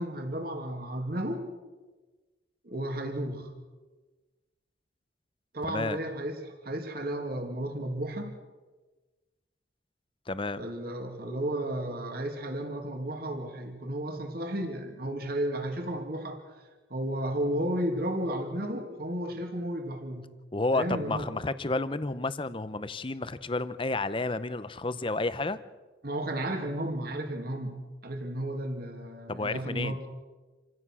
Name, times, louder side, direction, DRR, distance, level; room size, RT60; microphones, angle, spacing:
voice 1, 0.0-1.4 2.6-3.5 5.5-8.4 10.6-16.4 16.9-20.3 20.7-21.3 26.0-30.0, right 1 dB, 50° right, 4 dB, 2.7 m, -33 dB
voice 2, 5.7-6.0 10.3-10.6 20.5-25.6 29.3-30.0, left 2 dB, 25° left, 14 dB, 0.8 m, -31 dB
27.5 x 15.5 x 6.3 m, 1.3 s
head